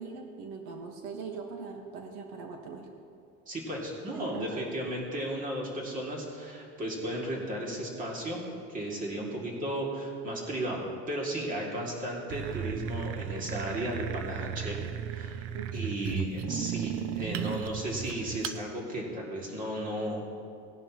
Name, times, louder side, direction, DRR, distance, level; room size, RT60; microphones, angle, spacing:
voice 1, 0.0-2.9 4.1-4.7 9.1-9.5 15.5-16.0, right 5 dB, 80° right, 3 dB, 1.4 m, -42 dB
voice 2, 3.5-8.4 8.7-14.8 15.1-15.5 15.7-20.4, right 1 dB, 25° right, -2 dB, 2.3 m, -34 dB
sound 1, 12.3-18.6, right 9 dB, 45° right, 0.5 m, -35 dB
18.0 x 10.5 x 3.0 m, 2.5 s
cardioid pair, 150°, 32 cm